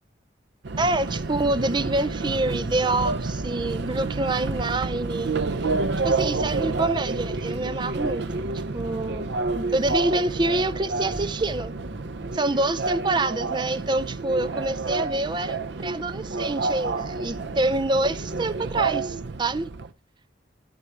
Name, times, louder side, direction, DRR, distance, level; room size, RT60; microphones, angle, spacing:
Subway metro underground, 0.6-19.9, right 3 dB, 65° right, 0.6 m, -29 dB
sound 1, 0.7-13.9, left 1 dB, 65° left, 3.1 m, -43 dB
voice 1, 0.8-5.4 6.0-8.5 8.7-11.7 12.3-19.7, right 2 dB, 25° right, 0.5 m, -26 dB
13.0 x 4.7 x 7.0 m
head